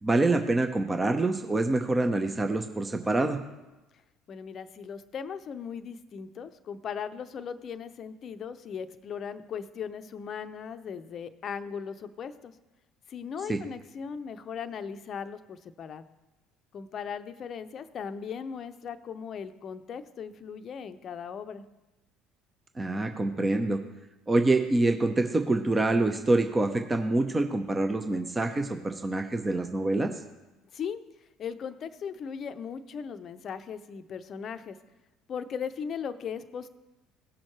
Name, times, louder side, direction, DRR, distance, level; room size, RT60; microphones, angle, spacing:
voice 1, 0.0-3.4 13.5-13.6 22.8-23.8 24.3-30.1, right 2 dB, 20° right, 6 dB, 0.8 m, -26 dB
voice 2, 4.3-12.5 13.1-16.0 16.7-21.6 30.7-31.0 31.4-34.8 35.3-36.7, left 7 dB, 45° left, 11 dB, 0.6 m, -38 dB
17.0 x 6.3 x 3.1 m, 1.1 s
hypercardioid pair, 60°, 0 cm